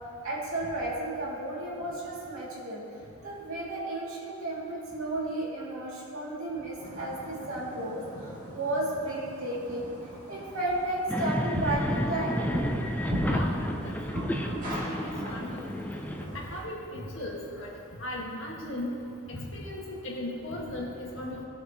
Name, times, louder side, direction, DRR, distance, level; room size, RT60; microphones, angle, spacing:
voice 1, 0.2-2.8 3.2-9.9 10.3-12.5, right 1 dB, 70° right, -6 dB, 2.6 m, -33 dB
sound 1, 6.8-16.6, equal, 35° right, 2.1 m, -38 dB
sound 2, 11.1-16.2, equal, 5° left, 0.4 m, -31 dB
voice 2, 13.3-15.6 16.3-17.7 18.0-19.0 19.3-21.4, left 1 dB, 60° left, -3 dB, 1.8 m, -37 dB
18.0 x 6.5 x 3.1 m, 2.5 s
head